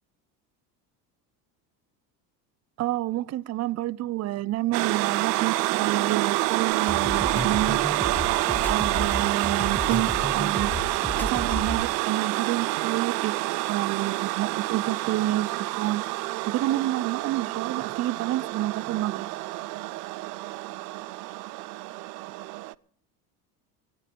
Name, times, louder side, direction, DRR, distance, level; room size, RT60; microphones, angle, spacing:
voice 1, 2.8-7.8 8.7-13.4 13.7-16.0 16.5-19.3, right 15 dB, 35° right, 0.5 m, -29 dB
sound 1, 4.7-22.7, right 20 dB, 80° right, 0.6 m, -28 dB
sound 2, 6.7-11.8, left 1 dB, 5° left, 1.5 m, -32 dB
18.5 x 14.5 x 3.7 m
hypercardioid pair, 70°, 48 cm